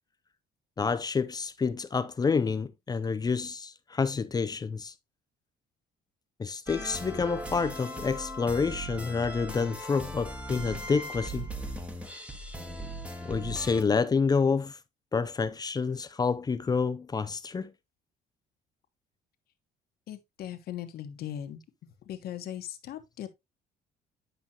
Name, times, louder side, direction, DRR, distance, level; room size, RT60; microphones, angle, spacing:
voice 1, 0.8-4.9 6.4-11.5 13.2-14.8 15.1-17.7, left 5 dB, 25° left, 0.5 m, -28 dB
sound 1, 6.7-13.8, equal, 5° right, 1.3 m, -39 dB
voice 2, 20.1-21.6 22.1-23.3, left 11 dB, 65° left, 1.3 m, -39 dB
9.4 x 5.3 x 2.8 m
cardioid pair, 110°, 17 cm